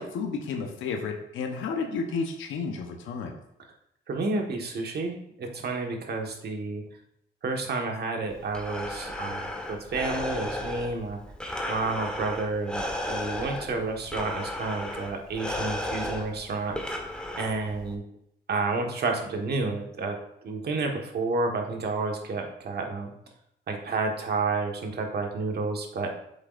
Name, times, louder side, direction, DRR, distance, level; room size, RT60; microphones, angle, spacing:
voice 1, 0.0-3.4, left 4 dB, 80° left, 3 dB, 1.0 m, -32 dB
voice 2, 4.1-6.8 7.4-11.2 11.7-16.9 17.4-18.0 18.5-20.2 20.4-23.1 23.7-26.2, right 3 dB, 55° right, 2 dB, 1.5 m, -30 dB
Breathing, 8.3-17.9, left 1 dB, 5° left, 1.3 m, -34 dB
8.2 x 7.3 x 2.6 m, 0.75 s
cardioid pair, 90°, 20 cm